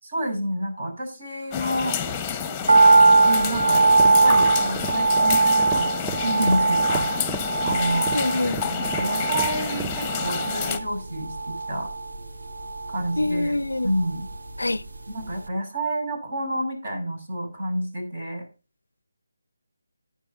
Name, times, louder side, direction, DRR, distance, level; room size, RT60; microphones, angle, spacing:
voice 1, 0.0-2.0 3.2-5.9 6.1-8.2 8.6-11.9 12.9-13.6 13.8-14.3 15.1-18.4, right 1 dB, 55° right, 6.3 m, -29 dB
sound 1, 1.5-10.8, left 7 dB, 10° left, 1.1 m, -29 dB
sound 2, 2.7-15.0 15.2-15.3, right 3 dB, 75° right, 1.2 m, -21 dB
sound 3, 3.5-10.0, right 4 dB, 5° right, 0.5 m, -35 dB
voice 2, 8.1-8.6 13.2-13.9 14.6-14.8, left 2 dB, 85° left, 0.5 m, -25 dB
14.5 x 10.0 x 2.6 m
figure-of-eight pair, 160°, 0 cm